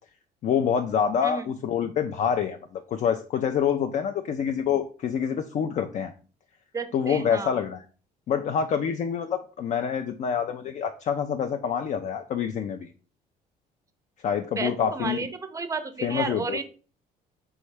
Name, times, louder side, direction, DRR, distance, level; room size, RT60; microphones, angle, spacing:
voice 1, 0.4-6.1 6.9-7.8 8.3-12.9 14.2-15.2 16.0-16.6, left 7 dB, 45° left, 7 dB, 0.4 m, -26 dB
voice 2, 6.7-7.6 14.6-16.6, right 4 dB, 20° right, 10 dB, 0.5 m, -32 dB
4.6 x 3.0 x 3.3 m, 0.38 s
cardioid pair, 110°, 17 cm